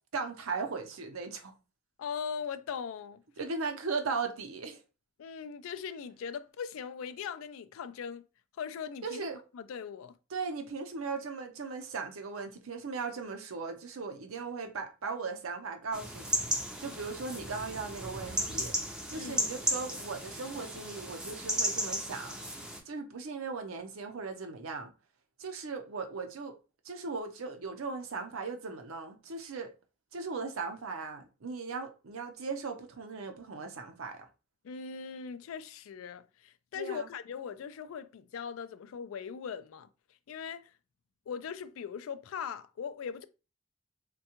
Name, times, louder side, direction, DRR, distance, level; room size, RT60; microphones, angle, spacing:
voice 1, 0.1-1.5 3.4-4.8 9.0-9.4 10.3-16.4 16.8-18.7 19.1-22.4 22.9-24.9 25.4-26.6 26.8-29.7 30.1-34.3 36.8-37.1, right 4 dB, 70° right, 0.6 m, -38 dB
voice 2, 2.0-3.2 5.2-8.3 8.6-10.1 19.1-19.5 34.6-39.9 40.3-40.7 41.3-43.2, left 7 dB, 70° left, 0.3 m, -40 dB
sound 1, 15.9-22.8, equal, 5° right, 0.5 m, -35 dB
3.5 x 2.2 x 2.8 m
head